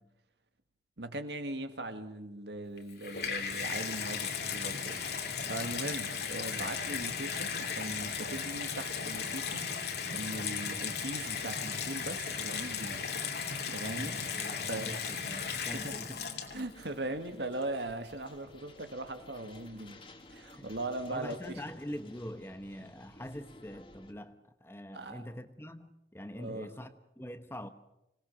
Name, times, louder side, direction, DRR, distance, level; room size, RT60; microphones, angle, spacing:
voice 1, 1.0-9.7 10.1-13.0 13.7-14.2 14.7-15.0 15.7-15.9 16.5-20.0 20.3-21.6 24.9-25.2 26.4-26.7, right 2 dB, 70° right, 2.0 m, -39 dB
Water tap faucet / Bathtub (filling or washing), 2.8-16.8 17.6-17.7, left 6 dB, 60° left, 2.7 m, -36 dB
voice 2, 14.0-16.2 20.5-20.7 21.1-27.7, equal, 15° left, 0.9 m, -44 dB
sound 1, 15.7-24.1, left 2 dB, 30° left, 2.3 m, -55 dB
26.0 x 18.5 x 7.3 m
head